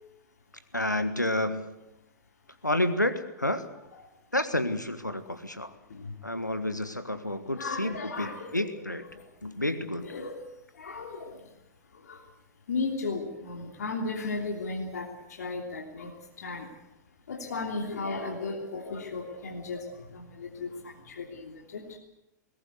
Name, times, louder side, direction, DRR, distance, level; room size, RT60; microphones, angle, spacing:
voice 1, 0.7-1.7 2.6-3.6 4.3-5.7 6.2-9.0 9.4-10.1, left 1 dB, 90° left, 11 dB, 1.6 m, -30 dB
voice 2, 7.5-9.1 10.0-10.4 10.8-11.4 12.1-12.2 12.7-15.1 15.4-16.1 16.4-16.7 17.3-19.8 20.1-21.8, left 3 dB, 65° left, 1 dB, 3.0 m, -35 dB
21.0 x 19.0 x 8.1 m, 0.90 s
figure-of-eight pair, 100°, 10 cm